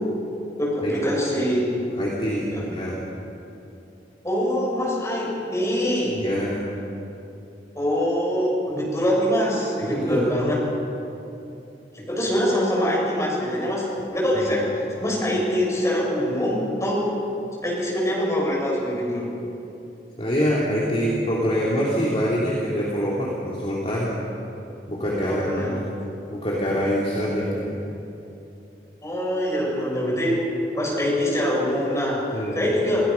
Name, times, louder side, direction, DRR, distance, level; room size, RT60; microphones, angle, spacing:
voice 1, 0.6-1.6 2.5-2.7 4.2-6.2 7.7-10.6 11.9-17.1 17.6-19.3 25.2-25.8 29.0-30.4 30.7-33.1, equal, 15° left, -4 dB, 6.4 m, -24 dB
voice 2, 2.0-3.0 6.2-6.6 9.8-10.3 14.4-14.5 20.2-24.1 24.9-25.8 26.3-27.8 32.3-32.6, equal, 35° left, -6 dB, 2.9 m, -25 dB
28.5 x 17.0 x 5.8 m, 2.8 s
head